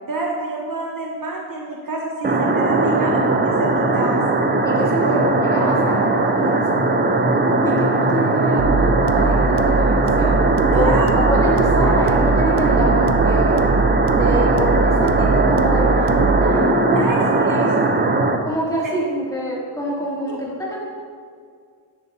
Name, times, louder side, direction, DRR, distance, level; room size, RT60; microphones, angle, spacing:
voice 1, 0.1-4.2 5.0-5.2 10.7-11.1 16.9-17.2 17.5-17.7, right 2 dB, 40° right, -2 dB, 1.2 m, -27 dB
sound 1, 2.2-18.4, right 2 dB, 20° right, 0.6 m, -18 dB
voice 2, 4.6-7.1 7.3-10.5 10.7-10.9 11.2-13.6 14.1-17.0 17.3-17.7 18.4-20.8, equal, 5° left, -6 dB, 2.6 m, -26 dB
sound 2, 8.6-16.6, right 4 dB, 80° right, 0.8 m, -22 dB
10.5 x 10.5 x 2.8 m, 2.1 s
wide cardioid pair, 125°, 50 cm